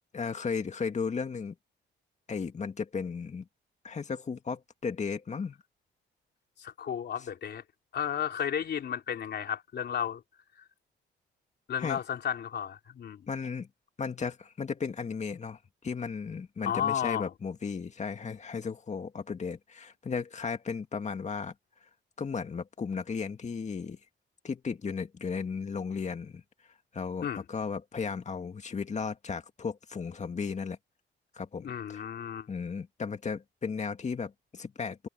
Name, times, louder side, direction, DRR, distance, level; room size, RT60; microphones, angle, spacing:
voice 1, 0.1-1.6 2.3-3.5 3.8-5.6 11.8-12.0 13.3-13.7 14.0-21.5 22.2-24.0 24.4-26.4 26.9-30.8 31.3-32.0 32.5-35.1, left 5 dB, 35° left, 2.2 m, -35 dB
voice 2, 6.6-7.6 7.9-10.2 11.7-13.2 16.6-17.3 27.2-27.4 31.6-32.5, left 8 dB, 55° left, 3.5 m, -33 dB
cardioid pair, 90°, 20 cm